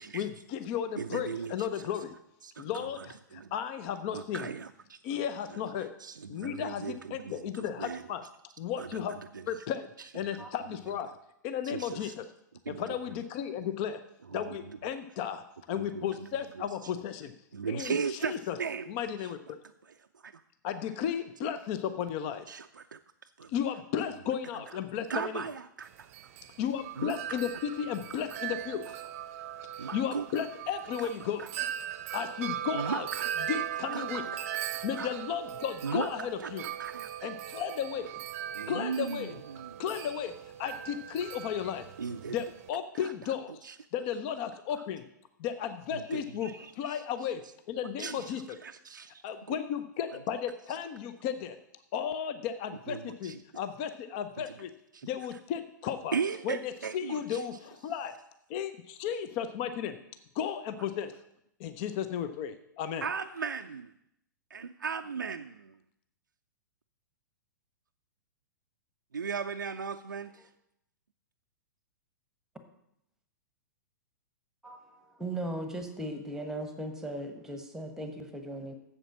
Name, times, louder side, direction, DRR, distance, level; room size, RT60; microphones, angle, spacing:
voice 1, 0.1-2.2 2.6-4.5 5.0-5.9 6.3-8.2 8.6-9.2 9.5-11.1 11.4-12.3 12.7-14.0 14.3-17.3 17.7-18.6 18.9-19.4 20.6-22.5 23.5-25.5 26.6-29.0 29.8-31.5 32.1-33.1 33.5-34.2 34.8-36.7 37.2-38.2 38.7-39.4 39.8-40.3 40.6-41.9 42.3-45.0 45.4-47.4 47.7-48.6 49.2-51.6 51.9-54.7 55.0-56.2 56.4-58.1 58.5-60.0 60.3-61.1 61.6-63.1, left 8 dB, 35° left, 11 dB, 0.6 m, -34 dB
voice 2, 1.0-1.5 2.4-2.6 3.3-3.5 4.1-5.0 6.0-7.3 7.8-8.0 8.8-9.0 11.7-12.1 12.7-12.9 15.7-16.0 17.5-18.9 22.5-23.0 23.4-23.5 25.1-26.1 27.0-27.4 29.8-30.2 31.0-31.1 31.4-31.5 32.7-33.3 33.9-34.1 34.7-35.1 35.8-36.1 36.4-36.5 36.8-37.1 38.5-39.7 42.0-42.3 43.0-43.1 43.6-43.7 46.1-47.0 48.0-48.2 48.6-49.2 52.9-53.4 54.9-55.1 56.1-57.4 63.0-63.9 64.5-65.6 69.1-70.5, right 6 dB, 75° right, 7 dB, 0.4 m, -36 dB
Wind chime, 25.8-42.7, right 10 dB, 40° right, 0.7 m, -39 dB
voice 3, 74.6-78.7, right 1 dB, 5° right, 7 dB, 1.2 m, -38 dB
7.9 x 7.3 x 7.3 m, 0.79 s
figure-of-eight pair, 105°, 11 cm